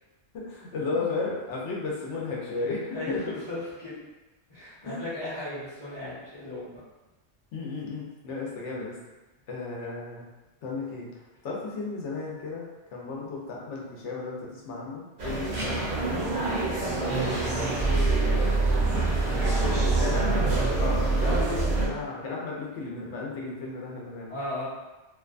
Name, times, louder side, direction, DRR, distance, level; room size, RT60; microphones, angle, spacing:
voice 1, 0.3-3.3 4.8-5.0 7.5-9.0 9.5-10.3 10.6-11.1 11.4-16.4 18.3-18.9 19.6-20.3 20.8-24.3, left 3 dB, 80° left, -3 dB, 0.9 m, -34 dB
voice 2, 2.9-4.0 4.5-6.8 19.3-20.2 24.3-24.6, left 1 dB, 25° left, -11 dB, 0.8 m, -37 dB
sound 1, 15.2-21.9, right 2 dB, 55° right, 0.7 m, -25 dB
2.6 x 2.2 x 2.4 m, 1.1 s
omnidirectional pair, 1.2 m